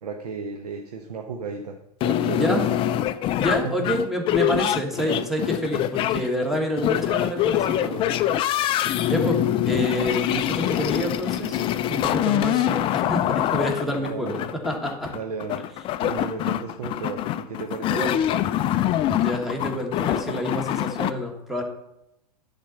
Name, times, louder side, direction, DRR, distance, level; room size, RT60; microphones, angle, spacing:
voice 1, 0.0-1.8 2.0-2.7 3.6-3.7 14.0-14.4 15.1-15.6 16.0-18.4, right 5 dB, 70° right, 4 dB, 0.9 m, -34 dB
sound 1, 2.0-21.1, left 12 dB, 25° left, 0.4 m, -24 dB
voice 2, 3.4-8.0 8.5-15.1 18.0-18.2 19.1-21.6, equal, ahead, 1 dB, 1.5 m, -28 dB
10.0 x 4.1 x 5.6 m, 0.86 s
figure-of-eight pair, 95°, 20 cm